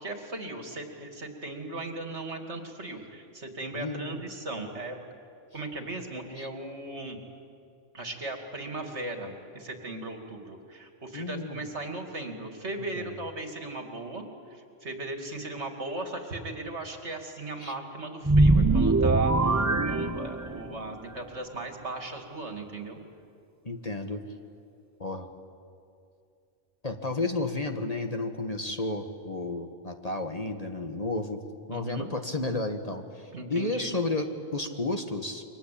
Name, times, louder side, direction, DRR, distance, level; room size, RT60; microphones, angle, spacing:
voice 1, 0.0-5.0 5.5-7.2 7.9-14.2 14.5-23.0 31.7-32.1 33.3-33.9, right 2 dB, 65° right, 4 dB, 3.0 m, -38 dB
voice 2, 3.7-4.2 6.4-6.5 11.1-11.7 12.9-13.1 17.6-17.7 23.6-24.2 25.0-25.3 26.8-31.4 31.7-35.4, left 2 dB, 30° left, 5 dB, 1.6 m, -32 dB
sound 1, 18.2-20.8, right 2 dB, 20° right, 0.6 m, -22 dB
29.5 x 23.5 x 8.6 m, 2.5 s
omnidirectional pair, 1.3 m